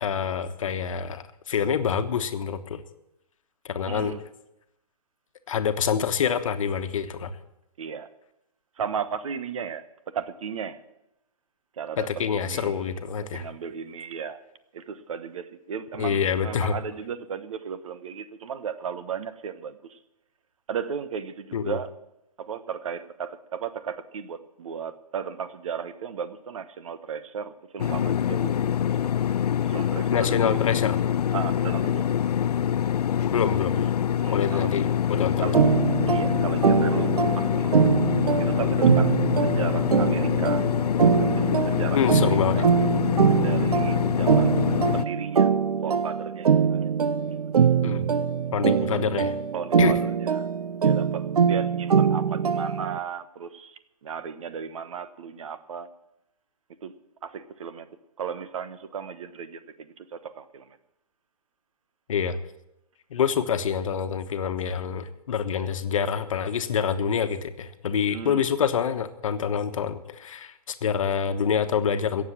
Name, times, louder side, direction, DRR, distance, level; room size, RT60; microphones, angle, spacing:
voice 1, 0.0-2.8 3.6-4.1 5.5-7.3 12.0-13.4 16.0-16.7 21.5-21.8 30.1-31.0 33.3-33.8 34.2-35.5 41.9-42.6 47.8-48.1 48.5-49.3 49.8-49.9 62.1-62.4 63.1-72.2, left 7 dB, 55° left, 8 dB, 1.3 m, -26 dB
voice 2, 3.9-4.2 7.8-8.1 8.8-9.8 10.1-10.8 11.8-12.8 13.3-14.4 14.7-20.0 20.7-21.9 22.4-28.5 29.6-30.8 31.3-32.1 34.2-34.8 35.4-35.6 36.1-38.0 38.4-40.7 41.2-42.8 43.4-44.5 44.9-45.5 45.8-46.9 49.5-50.5 50.8-55.9 56.8-57.0 57.2-57.9 58.2-60.8 68.1-68.4, right 7 dB, 55° right, 12 dB, 1.2 m, -35 dB
sound 1, 27.8-45.0, left 9 dB, 80° left, 0.4 m, -25 dB
sound 2, 35.5-53.0, right 7 dB, 70° right, 0.8 m, -23 dB
17.0 x 7.5 x 7.4 m, 0.87 s
hypercardioid pair, 140°, 20 cm